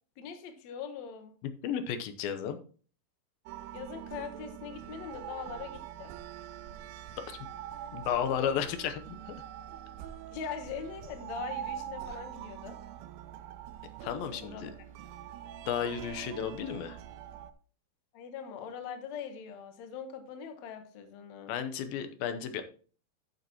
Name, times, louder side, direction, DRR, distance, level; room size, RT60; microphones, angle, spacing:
voice 1, 0.2-1.3 3.7-6.1 10.3-12.8 14.4-14.7 18.1-21.6, left 7 dB, 60° left, 7 dB, 2.1 m, -42 dB
voice 2, 1.4-2.6 7.3-7.4 7.9-9.3 14.0-14.7 15.7-17.0 21.5-22.6, left 8 dB, 90° left, 9 dB, 2.7 m, -33 dB
sound 1, 3.5-17.5, right 10 dB, 85° right, 2.4 m, -44 dB
12.0 x 6.8 x 2.9 m, 0.40 s
omnidirectional pair, 4.2 m